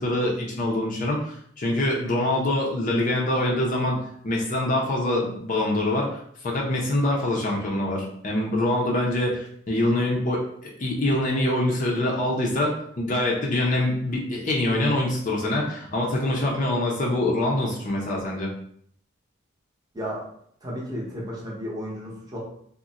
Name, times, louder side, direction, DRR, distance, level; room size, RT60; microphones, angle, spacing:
voice 1, 0.0-18.5, left 1 dB, 40° left, -2 dB, 0.5 m, -25 dB
voice 2, 19.9-20.3 20.6-22.4, equal, 20° right, -4 dB, 0.7 m, -33 dB
2.4 x 2.1 x 3.9 m, 0.66 s
head